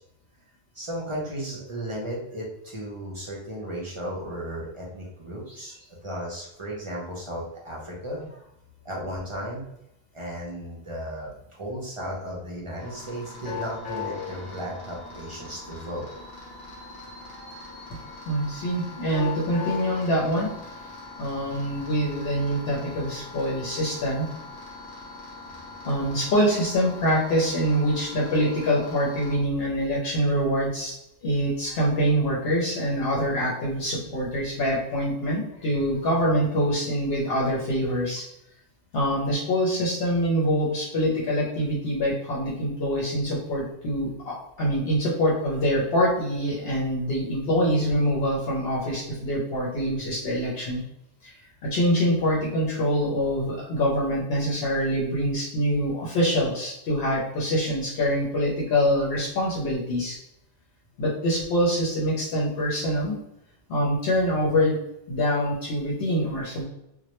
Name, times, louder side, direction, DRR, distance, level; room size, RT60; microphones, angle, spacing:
voice 1, 0.7-5.7 6.0-8.3 8.8-9.7 10.1-16.1 25.5-25.6, equal, 45° right, -4 dB, 0.4 m, -35 dB
sound 1, 12.8-29.4, left 4 dB, 25° left, 0.7 m, -40 dB
voice 2, 18.3-20.5 21.2-24.3 25.8-30.9 31.2-38.2 38.9-50.8 51.2-51.3 51.6-60.2 61.0-63.1 63.7-64.8 65.1-66.6, equal, 75° left, -5 dB, 0.8 m, -25 dB
2.2 x 2.0 x 2.8 m, 0.82 s
omnidirectional pair, 1.1 m